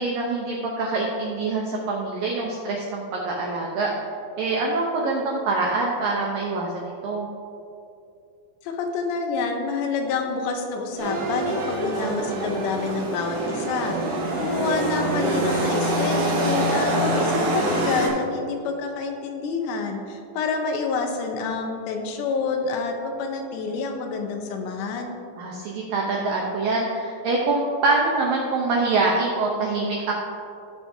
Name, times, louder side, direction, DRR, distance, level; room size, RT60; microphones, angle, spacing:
voice 1, 0.0-3.9 4.4-6.7 7.0-7.3 14.3-14.7 25.4-30.1, right 3 dB, 80° right, -2 dB, 2.0 m, -25 dB
voice 2, 8.6-25.1, left 4 dB, 80° left, 4 dB, 2.9 m, -28 dB
sound 1, 11.0-18.1, right 1 dB, 55° right, 2.9 m, -25 dB
17.5 x 6.1 x 2.8 m, 2.6 s
omnidirectional pair, 5.2 m